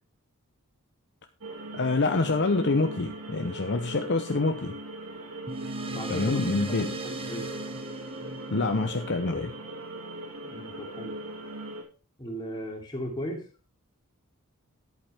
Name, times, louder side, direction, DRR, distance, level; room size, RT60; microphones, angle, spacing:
sound 1, 1.4-11.8, right 2 dB, 70° right, 2.4 m, -40 dB
voice 1, 1.7-4.8 6.1-7.0 8.5-9.5, left 3 dB, 50° left, 0.7 m, -26 dB
sound 2, 5.5-10.3, right 2 dB, 25° right, 1.3 m, -39 dB
voice 2, 5.9-6.4 7.2-7.4 10.4-11.1 12.2-13.4, equal, 20° left, 3.0 m, -36 dB
11.0 x 8.9 x 3.4 m
head